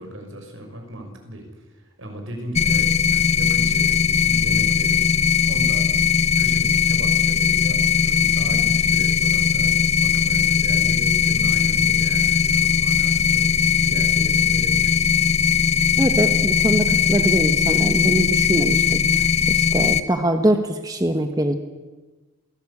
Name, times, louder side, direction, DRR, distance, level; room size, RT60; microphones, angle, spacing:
voice 1, 0.0-5.9 6.2-15.0, right 1 dB, 70° right, 3 dB, 6.2 m, -36 dB
sound 1, 2.5-20.0, left 7 dB, 30° left, 0.9 m, -19 dB
voice 2, 16.0-21.6, right 1 dB, 15° right, 6 dB, 1.3 m, -23 dB
27.0 x 18.5 x 8.6 m, 1.2 s
head